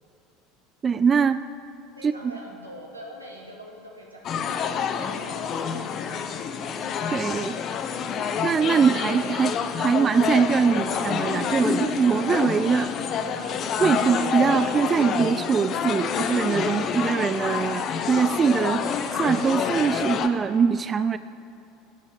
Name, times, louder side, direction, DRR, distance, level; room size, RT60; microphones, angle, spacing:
voice 1, 0.8-1.4 2.0-2.3 7.1-7.6 8.4-12.9 13.8-21.2, right 6 dB, 30° right, 13 dB, 0.3 m, -23 dB
voice 2, 1.9-6.5 13.2-13.6 14.5-15.4, equal, 90° right, -2 dB, 2.1 m, -44 dB
sound 1, 4.2-20.3, left 7 dB, 40° left, 0.8 m, -28 dB
13.0 x 6.2 x 9.2 m, 2.7 s
figure-of-eight pair, 70°, 0 cm